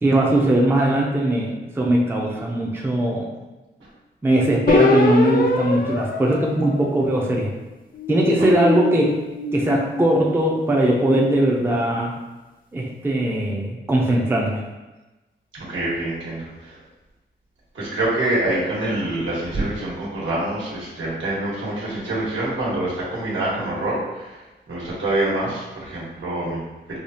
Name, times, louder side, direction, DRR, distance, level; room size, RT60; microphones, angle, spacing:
voice 1, 0.0-3.3 4.2-7.5 8.1-9.2 9.5-12.1 12.7-14.6, right 1 dB, 10° right, -2 dB, 0.4 m, -20 dB
sound 1, 4.7-7.4 7.9-10.4, left 4 dB, 45° left, 0.5 m, -23 dB
voice 2, 15.5-16.8 17.7-24.4 24.7-26.6, right 1 dB, 80° right, -7 dB, 1.3 m, -26 dB
4.8 x 2.3 x 2.7 m, 1.1 s
wide cardioid pair, 130°, 20 cm